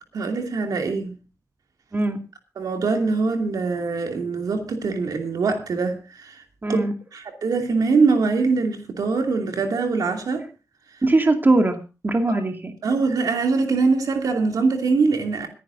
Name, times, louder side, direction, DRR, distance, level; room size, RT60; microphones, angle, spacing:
voice 1, 0.1-1.1 2.6-6.4 7.1-10.5 12.3-12.4 12.8-15.5, right 4 dB, 85° right, 2.7 m, -23 dB
voice 2, 6.6-6.9 11.0-12.7, right 2 dB, 35° right, 2.4 m, -20 dB
26.0 x 10.0 x 2.7 m
wide cardioid pair, 90°, 6 cm